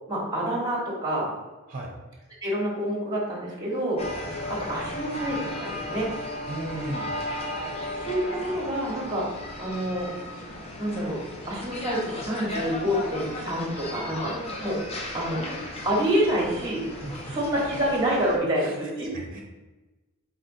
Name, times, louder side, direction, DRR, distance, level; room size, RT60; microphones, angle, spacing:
voice 1, 0.1-1.3 2.4-6.1 7.9-9.3 9.6-10.1 10.8-11.2 11.5-14.3 14.6-14.8 15.1-15.4 15.8-16.8 17.3-19.1, equal, 20° right, -3 dB, 1.1 m, -27 dB
sound 1, 4.0-18.4, left 1 dB, 30° left, 0.6 m, -35 dB
voice 2, 6.5-7.1 17.0-17.4 18.6-18.8 19.1-19.4, right 1 dB, 40° right, 1 dB, 0.7 m, -35 dB
4.2 x 4.0 x 2.6 m, 1.2 s
head